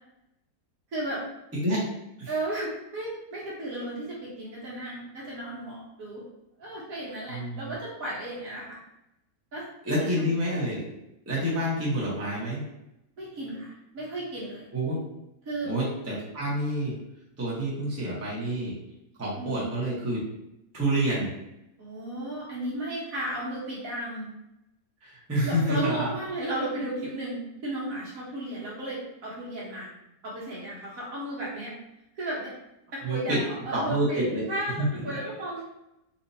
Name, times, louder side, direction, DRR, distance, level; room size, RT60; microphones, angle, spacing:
voice 1, 0.9-1.2 2.3-6.2 6.6-8.8 9.5-10.3 13.2-14.7 15.4-15.7 19.4-19.7 21.8-24.3 25.4-29.9 30.2-31.7 32.1-32.5 32.9-35.6, right 1 dB, 60° right, -5 dB, 1.3 m, -34 dB
voice 2, 7.3-7.7 9.8-10.8 11.3-12.6 14.7-15.0 15.7-16.9 17.4-18.7 19.2-20.2 20.7-21.3 25.0-26.1 33.0-33.4 33.7-34.4 34.8-34.9, right 1 dB, 10° right, -7 dB, 0.8 m, -28 dB
4.1 x 2.6 x 2.6 m, 0.87 s
omnidirectional pair, 1.8 m